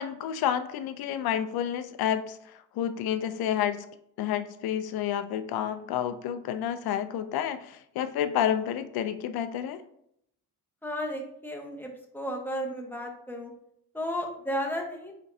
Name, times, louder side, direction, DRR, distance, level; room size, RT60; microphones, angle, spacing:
voice 1, 0.0-3.9 4.2-9.8, left 10 dB, 65° left, 10 dB, 0.5 m, -30 dB
voice 2, 10.8-13.5 13.9-15.1, equal, 5° left, 1 dB, 0.9 m, -33 dB
4.4 x 3.9 x 2.7 m, 0.72 s
supercardioid pair, 75°, 40 cm